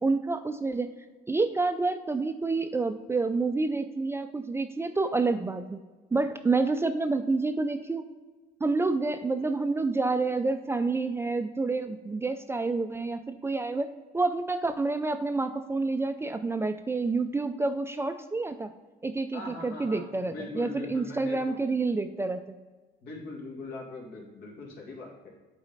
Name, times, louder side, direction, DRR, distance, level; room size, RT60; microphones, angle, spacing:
voice 1, 0.0-0.9 1.3-5.8 6.1-8.0 8.6-18.7 19.0-22.6, right 3 dB, 15° right, 9 dB, 0.3 m, -28 dB
voice 2, 19.3-21.6 23.0-25.3, left 3 dB, 70° left, -2 dB, 2.0 m, -41 dB
8.0 x 4.1 x 4.0 m, 1.3 s
cardioid pair, 110°, 17 cm